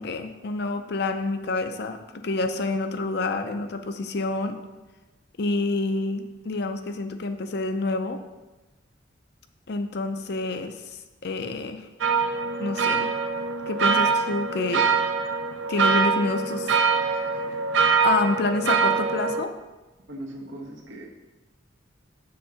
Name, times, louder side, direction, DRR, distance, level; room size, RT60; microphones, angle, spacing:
voice 1, 0.0-4.6 5.4-8.2 9.7-10.7 11.2-11.9 12.6-13.1 13.7-14.9 15.7-16.7 17.1-17.4 18.0-19.5, left 3 dB, 60° left, 7 dB, 0.6 m, -28 dB
sound 1, 12.0-19.4, right 5 dB, 75° right, 0.5 m, -24 dB
voice 2, 20.1-21.1, right 1 dB, 90° right, 0 dB, 1.3 m, -38 dB
6.8 x 3.8 x 5.7 m, 1.1 s
head